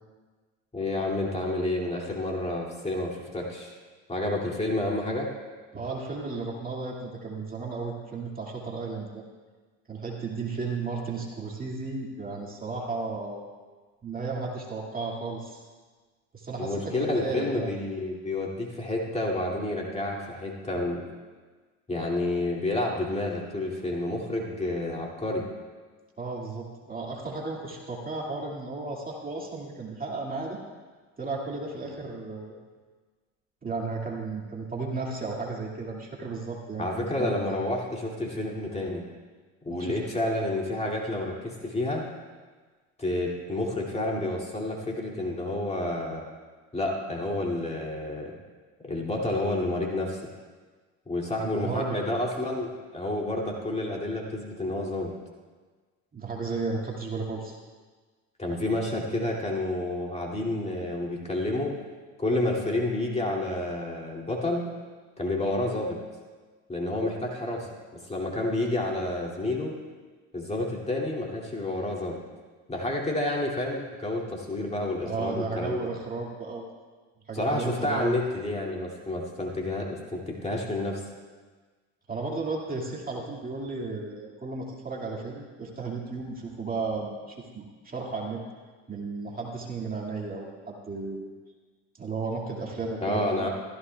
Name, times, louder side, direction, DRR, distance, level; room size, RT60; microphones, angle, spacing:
voice 1, 0.7-3.8 4.1-5.3 16.6-21.0 21.9-25.5 36.8-39.1 39.6-42.1 43.0-46.3 46.7-48.4 48.8-50.2 51.1-55.1 58.4-61.7 62.2-64.7 65.2-66.0 66.7-69.7 70.3-72.2 72.7-75.9 77.3-81.0 93.0-93.5, left 1 dB, 15° left, -2 dB, 2.5 m, -29 dB
voice 2, 5.7-9.2 9.9-13.4 14.0-15.7 16.3-17.7 26.2-30.6 31.2-32.6 33.6-37.3 39.7-40.0 51.4-52.0 56.1-57.6 75.0-76.7 77.3-78.2 82.1-88.4 88.9-91.3 92.0-93.5, right 3 dB, 25° right, -2 dB, 2.2 m, -34 dB
15.5 x 14.0 x 2.3 m, 1.4 s
hypercardioid pair, 80°, 38 cm